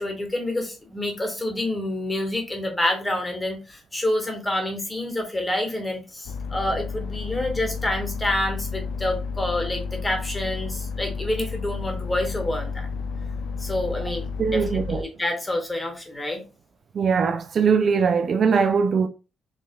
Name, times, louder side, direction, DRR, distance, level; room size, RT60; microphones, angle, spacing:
voice 1, 0.0-12.9 13.6-16.4, left 1 dB, 15° left, 1.7 m, -28 dB
sound 1, 6.2-15.0, left 5 dB, 80° left, 0.6 m, -31 dB
voice 2, 14.4-15.0 16.9-19.1, right 5 dB, 50° right, 0.4 m, -21 dB
5.6 x 3.1 x 2.3 m
cardioid pair, 90°, 0 cm